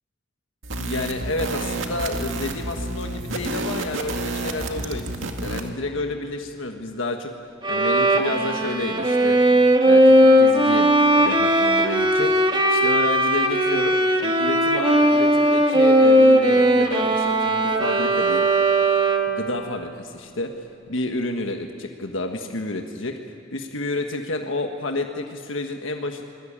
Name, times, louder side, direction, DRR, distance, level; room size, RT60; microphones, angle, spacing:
sound 1, 0.6-5.7, right 2 dB, 90° right, 2.2 m, -30 dB
voice 1, 0.8-7.3 7.7-9.4 9.8-12.3 12.7-14.0 14.2-18.5 19.3-23.2 23.5-26.2, left 2 dB, 90° left, 4 dB, 1.5 m, -30 dB
Bowed string instrument, 7.6-19.5, right 1 dB, 25° right, 1.6 m, -18 dB
25.5 x 21.0 x 8.8 m, 2.5 s
head